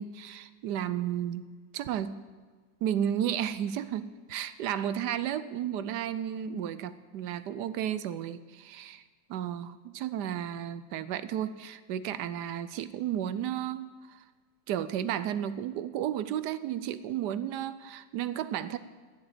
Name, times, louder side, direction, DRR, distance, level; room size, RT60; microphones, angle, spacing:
voice 1, 0.0-1.4 1.7-2.2 2.8-9.0 9.3-14.2 14.7-18.8, right 10 dB, 75° right, 14 dB, 1.1 m, -33 dB
13.0 x 7.5 x 8.9 m, 1.5 s
omnidirectional pair, 2.0 m